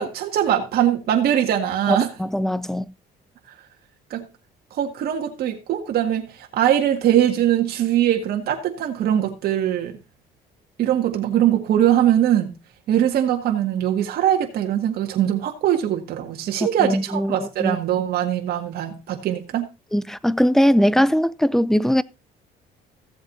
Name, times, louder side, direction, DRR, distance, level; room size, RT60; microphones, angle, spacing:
voice 1, 0.0-2.1 4.1-4.2 4.7-10.0 10.8-12.5 12.9-19.7, right 11 dB, 65° right, 1.8 m, -21 dB
voice 2, 1.9-2.9 16.8-17.8 19.9-22.0, equal, ahead, 0.4 m, -20 dB
15.5 x 7.9 x 2.7 m
cardioid pair, 110°, 17 cm